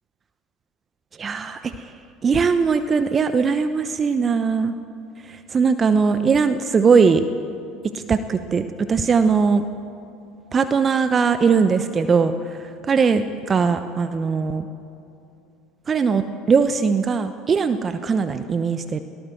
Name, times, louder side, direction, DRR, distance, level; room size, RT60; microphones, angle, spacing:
voice 1, 1.2-1.9 2.2-4.7 5.3-7.2 7.9-9.6 10.5-12.6 12.9-14.6 15.9-19.0, right 5 dB, 30° right, 11 dB, 0.9 m, -20 dB
19.5 x 18.0 x 7.8 m, 2.7 s
hypercardioid pair, 70°, 0 cm